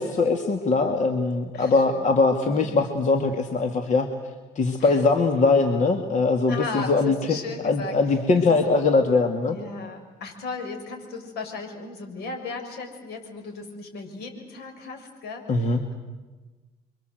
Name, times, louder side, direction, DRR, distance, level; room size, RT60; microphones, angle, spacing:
voice 1, 0.0-4.1 4.6-7.4 7.6-9.6 15.5-15.8, left 3 dB, 45° left, 5 dB, 2.3 m, -21 dB
voice 2, 1.5-2.1 2.4-2.7 4.8-5.0 6.5-8.0 8.3-8.6 9.5-16.0, left 3 dB, 75° left, 5 dB, 6.6 m, -36 dB
30.0 x 24.5 x 8.0 m, 1.2 s
cardioid pair, 110°, 17 cm